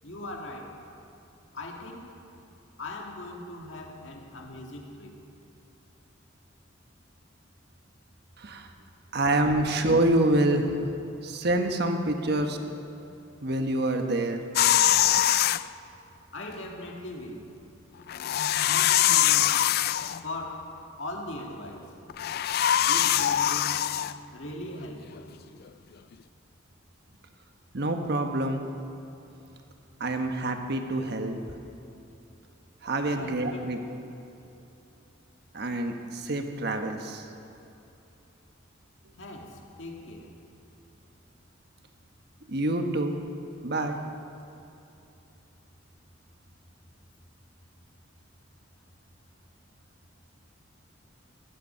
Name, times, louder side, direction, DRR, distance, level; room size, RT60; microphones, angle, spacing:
voice 1, 0.0-0.8 1.5-2.2 2.8-5.2 16.3-17.5 18.7-19.8 20.2-22.0 22.8-23.9 24.3-25.3 33.0-33.7 39.2-40.4, left 1 dB, 65° left, 1 dB, 1.9 m, -40 dB
voice 2, 8.4-8.7 9.1-10.8 11.2-12.6 13.4-14.4 27.7-28.7 30.0-31.4 32.8-33.8 35.5-37.3 42.5-43.2 43.6-44.0, right 1 dB, 55° right, 5 dB, 1.2 m, -26 dB
sound 1, 14.6-15.6 18.1-20.2 22.1-24.1, left 11 dB, 50° left, 0.3 m, -23 dB
18.5 x 11.5 x 5.6 m, 2.8 s
head